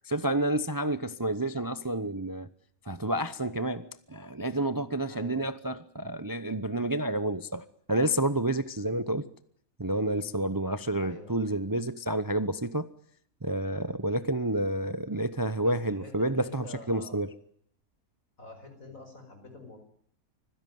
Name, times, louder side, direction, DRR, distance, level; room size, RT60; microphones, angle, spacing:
voice 1, 0.1-2.5 2.9-9.3 9.8-12.9 13.4-17.3, right 1 dB, 20° right, 0.7 m, -29 dB
voice 2, 5.1-5.5 8.8-9.1 11.0-11.4 15.6-17.2 18.4-19.8, left 2 dB, 70° left, 5.9 m, -47 dB
25.5 x 16.5 x 9.4 m
omnidirectional pair, 1.5 m